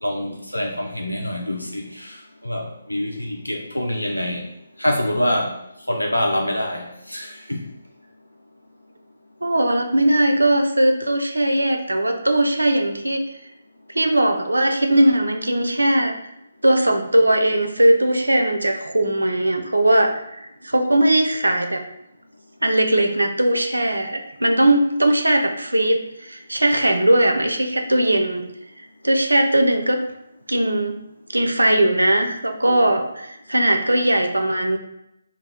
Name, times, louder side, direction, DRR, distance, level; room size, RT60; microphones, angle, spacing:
voice 1, 0.0-4.5 4.8-5.6 5.9-7.7, left 1 dB, 90° left, 1 dB, 0.4 m, -25 dB
voice 2, 9.4-13.2 13.9-16.1 16.6-21.8 22.6-28.4 29.0-30.0 30.5-31.0 31.3-34.8, right 1 dB, 80° right, 5 dB, 0.4 m, -19 dB
2.2 x 2.1 x 3.3 m, 0.83 s
figure-of-eight pair, 145°, 0 cm